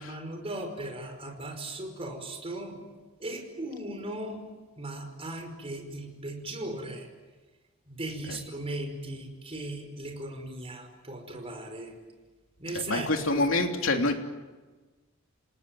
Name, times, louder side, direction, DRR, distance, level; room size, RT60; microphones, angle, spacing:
voice 1, 0.0-2.8 3.2-4.4 4.8-7.1 7.9-11.9 12.6-13.1 13.4-13.5, right 1 dB, 30° right, 4 dB, 5.1 m, -37 dB
voice 2, 12.9-14.2, left 2 dB, 75° left, 3 dB, 3.2 m, -26 dB
28.0 x 19.5 x 9.4 m, 1.3 s
head